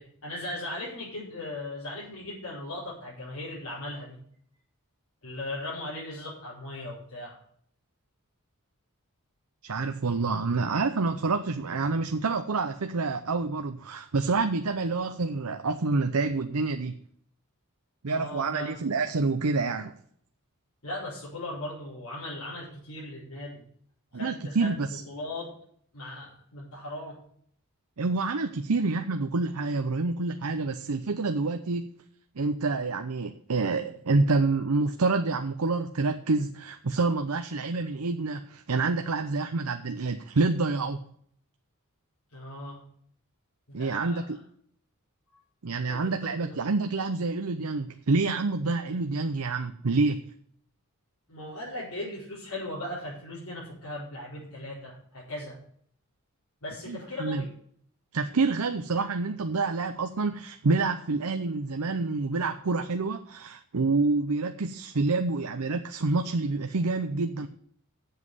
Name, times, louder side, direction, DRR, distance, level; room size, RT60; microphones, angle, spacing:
voice 1, 0.0-4.2 5.2-7.4 18.1-18.8 20.8-23.6 24.1-25.5 25.9-27.2 42.3-42.8 43.7-44.2 45.9-46.5 51.3-55.6 56.6-57.5, left 1 dB, 70° left, -9 dB, 4.9 m, -38 dB
voice 2, 9.6-17.0 18.0-19.9 24.1-25.0 28.0-31.9 32.4-41.0 43.7-44.4 45.6-50.2 56.9-57.5 58.1-67.5, right 3 dB, 90° right, 7 dB, 0.7 m, -27 dB
8.0 x 7.5 x 8.1 m, 0.62 s
head